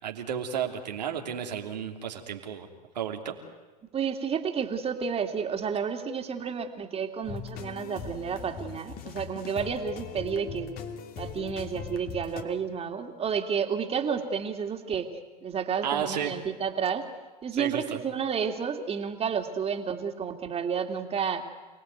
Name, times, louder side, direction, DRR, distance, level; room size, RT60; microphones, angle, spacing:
voice 1, 0.0-2.7 2.9-3.4 15.8-16.3 17.5-18.0, right 8 dB, 85° right, 3 dB, 3.0 m, -32 dB
voice 2, 3.9-10.7 11.2-15.1 15.4-17.1 17.4-21.4, right 6 dB, 30° right, 5 dB, 2.8 m, -31 dB
sound 1, 7.2-12.4, left 7 dB, 45° left, 2.7 m, -40 dB
28.5 x 18.5 x 9.4 m, 1.3 s
hypercardioid pair, 95°, 21 cm